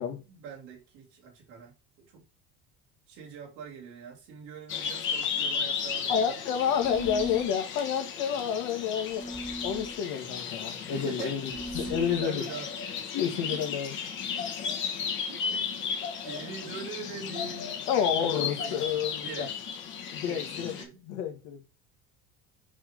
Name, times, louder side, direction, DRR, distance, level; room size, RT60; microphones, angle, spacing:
voice 1, 0.3-2.3 3.1-6.4 10.8-12.7 13.5-13.7 14.7-14.8 15.3-15.9 16.2-17.9 18.2-19.5 20.2-21.1, right 6 dB, 65° right, 2.6 m, -43 dB
sound 1, 4.7-20.8, left 6 dB, 40° left, 1.2 m, -35 dB
voice 2, 6.1-9.2 9.6-12.4 13.1-13.9 17.9-19.5 20.1-20.7 21.0-21.6, left 8 dB, 70° left, 1.6 m, -29 dB
sound 2, 6.8-7.5 9.1-10.0 11.5-12.3, right 1 dB, 5° left, 0.7 m, -38 dB
5.7 x 3.6 x 5.0 m
cardioid pair, 170°, 31 cm